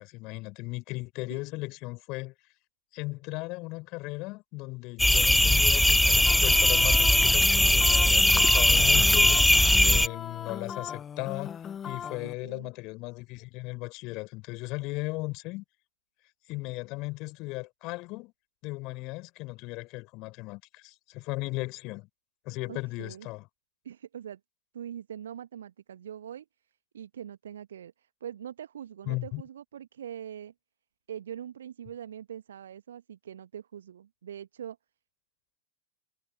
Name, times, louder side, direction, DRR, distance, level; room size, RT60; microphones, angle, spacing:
voice 1, 0.0-2.3 2.9-11.5 11.8-15.6 16.5-18.3 18.6-22.1 22.4-23.5 29.1-29.4, left 23 dB, 40° left, 4.7 m, -37 dB
sound 1, 5.0-10.1, left 1 dB, 5° left, 0.3 m, -20 dB
sound 2, 6.3-12.3, left 8 dB, 25° left, 0.9 m, -39 dB
voice 2, 12.2-12.7 22.7-23.3 23.8-24.4 24.7-30.5 31.1-34.8, right 9 dB, 65° right, 1.4 m, -43 dB
figure-of-eight pair, 90°, 0 cm